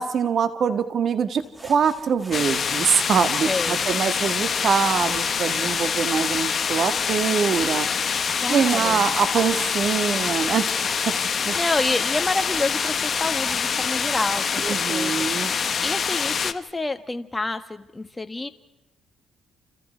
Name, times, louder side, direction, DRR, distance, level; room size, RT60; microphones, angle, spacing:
voice 1, 0.0-7.9 8.5-10.7 11.1-11.2 11.5-11.6 14.6-15.5, right 7 dB, 60° right, 9 dB, 2.0 m, -23 dB
sound 1, 1.4-14.3, right 1 dB, 10° right, 3.0 m, -43 dB
sound 2, 2.3-16.5, left 6 dB, 45° left, 1.3 m, -25 dB
voice 2, 3.4-3.8 8.4-9.0 11.3-18.5, left 2 dB, 15° left, 8 dB, 1.4 m, -28 dB
29.0 x 28.5 x 4.6 m, 1.0 s
cardioid pair, 90°, 0 cm